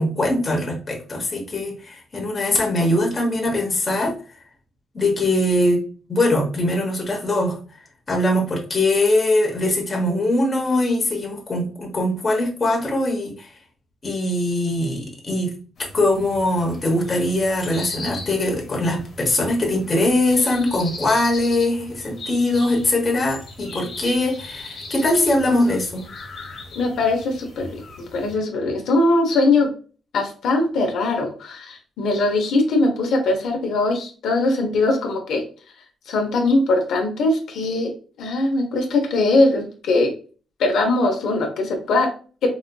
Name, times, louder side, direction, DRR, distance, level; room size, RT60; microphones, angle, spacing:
voice 1, 0.0-4.2 4.9-5.8 6.1-7.6 8.1-13.5 14.0-15.5 15.9-26.1, left 1 dB, 25° left, -1 dB, 0.9 m, -21 dB
sound 1, 15.8-28.3, left 2 dB, 45° left, 1.1 m, -38 dB
voice 2, 26.8-27.8 28.1-29.7 30.1-35.4 36.1-37.9 38.2-40.1 40.6-42.1, left 2 dB, 75° left, 3 dB, 0.8 m, -21 dB
4.0 x 2.6 x 2.2 m, 0.38 s
cardioid pair, 155°, 0 cm